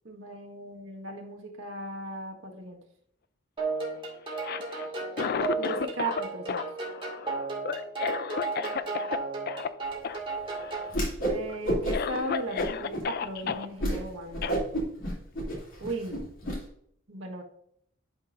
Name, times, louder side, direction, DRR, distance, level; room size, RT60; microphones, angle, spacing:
voice 1, 0.1-2.8 5.6-6.6 11.3-14.6 15.8-16.3 17.1-17.4, right 2 dB, 85° right, 1 dB, 1.6 m, -36 dB
sound 1, 3.6-11.0, right 3 dB, 25° right, 2.1 m, -34 dB
Cough, 4.3-6.2 6.5-9.2 9.5-9.7 10.0-10.2 10.5-11.0 11.5-11.6 11.9-13.6 14.4-14.6, left 6 dB, 55° left, 0.4 m, -32 dB
Whoosh swoosh swish, 10.9-11.4 11.6-12.2 12.6-13.0 13.4-13.5 13.8-14.0 14.3-16.6, right 1 dB, 80° left, 2.9 m, -29 dB
11.5 x 5.7 x 2.6 m, 0.69 s
head